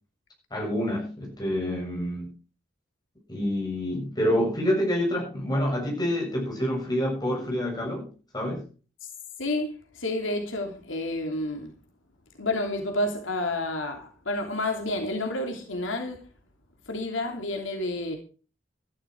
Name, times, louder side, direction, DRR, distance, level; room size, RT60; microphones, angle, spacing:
voice 1, 0.5-2.3 3.3-8.6, equal, 20° left, 7.1 m, -27 dB
voice 2, 9.4-11.7 12.4-16.3 16.9-18.2, left 2 dB, 75° left, 2.9 m, -30 dB
13.5 x 12.0 x 4.8 m
head